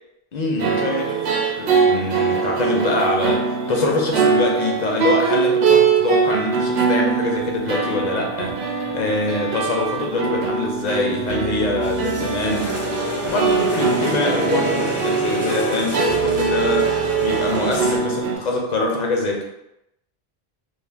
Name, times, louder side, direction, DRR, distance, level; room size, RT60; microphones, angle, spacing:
voice 1, 0.3-1.2 1.6-12.7 13.2-16.9 17.2-19.4, left 2 dB, 50° left, 0 dB, 0.6 m, -24 dB
sound 1, 0.6-18.4, right 6 dB, 85° right, 0.8 m, -22 dB
sound 2, 5.1-18.3, left 3 dB, 85° left, 0.9 m, -40 dB
sound 3, 11.8-18.0, left 1 dB, 20° right, 0.4 m, -29 dB
2.5 x 2.1 x 3.2 m, 0.83 s
omnidirectional pair, 1.1 m